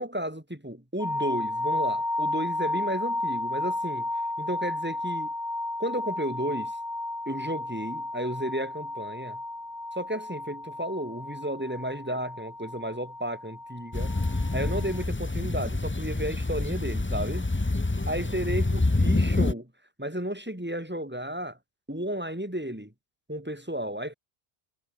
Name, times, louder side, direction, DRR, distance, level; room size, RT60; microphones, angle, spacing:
voice 1, 0.0-4.1 4.4-5.3 5.8-6.7 7.3-9.4 9.9-14.1 14.5-17.5 18.1-19.7 20.0-21.6 21.9-22.9 23.3-24.1, right 1 dB, 10° right, 3.3 m, -33 dB
sound 1, 1.0-15.0, left 2 dB, 80° left, 5.6 m, -33 dB
sound 2, 13.9-19.5, left 2 dB, 15° left, 0.5 m, -27 dB
omnidirectional pair, 1.1 m